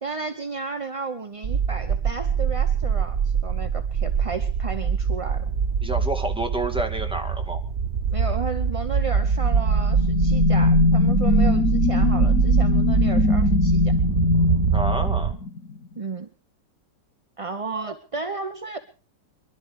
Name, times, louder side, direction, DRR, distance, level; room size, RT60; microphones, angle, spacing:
voice 1, 0.0-5.4 8.1-13.9 16.0-16.3 17.4-18.8, right 4 dB, 30° right, 8 dB, 0.6 m, -33 dB
sound 1, 1.4-15.3, right 7 dB, 45° right, 1.2 m, -23 dB
voice 2, 5.8-7.6 14.7-15.4, right 1 dB, 5° right, 4 dB, 2.1 m, -29 dB
sound 2, 9.2-15.8, left 4 dB, 60° left, 1.9 m, -22 dB
24.0 x 12.0 x 4.9 m, 0.38 s
omnidirectional pair, 1.9 m